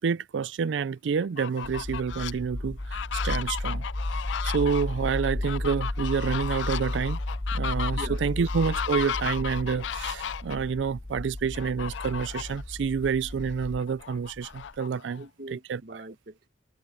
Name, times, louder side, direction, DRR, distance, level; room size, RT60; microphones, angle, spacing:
voice 1, 0.0-3.8 4.4-7.2 7.5-15.2 15.7-15.8, right 6 dB, 80° right, 0.4 m, -28 dB
Fowl, 1.2-2.3 2.8-10.6 11.5-12.6 13.0-13.1 13.5-15.2, left 8 dB, 85° left, 0.4 m, -35 dB
sound 1, 1.6-13.8, left 1 dB, 15° left, 0.5 m, -33 dB
sound 2, 5.7-14.8, equal, 20° right, 7.5 m, -53 dB
voice 2, 8.0-8.5 15.1-16.5, right 1 dB, 55° right, 1.6 m, -42 dB
head